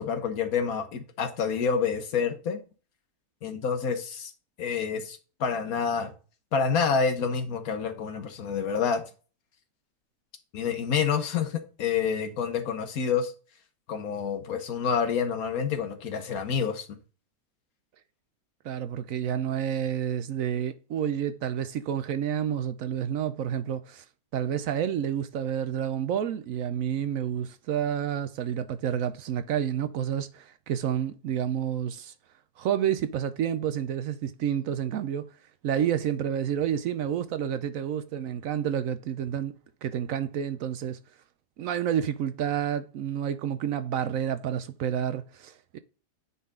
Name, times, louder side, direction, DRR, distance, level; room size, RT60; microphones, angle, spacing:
voice 1, 0.0-2.6 3.4-4.3 4.6-6.1 6.5-9.0 10.5-13.3 13.9-16.9, left 6 dB, 70° left, 1.5 m, -28 dB
voice 2, 18.6-24.0 24.3-32.1 32.6-35.3 35.6-39.6 39.8-41.0 41.6-45.8, right 9 dB, 70° right, 0.9 m, -29 dB
9.4 x 4.0 x 3.7 m
omnidirectional pair, 1.6 m